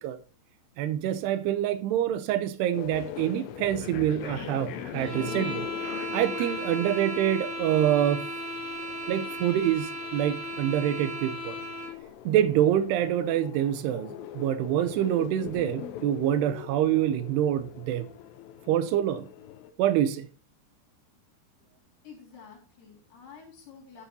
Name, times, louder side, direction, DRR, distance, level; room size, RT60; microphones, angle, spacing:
voice 1, 0.8-5.7 6.1-8.3 9.1-11.6 12.3-18.1 18.7-19.3 19.8-20.3, right 11 dB, 80° right, 2.6 m, -26 dB
sound 1, 2.7-19.7, left 10 dB, 85° left, 3.0 m, -42 dB
sound 2, 4.9-12.0, equal, 45° right, 4.9 m, -36 dB
voice 2, 22.0-24.0, left 6 dB, 65° left, 5.2 m, -49 dB
13.0 x 8.3 x 2.7 m
omnidirectional pair, 5.0 m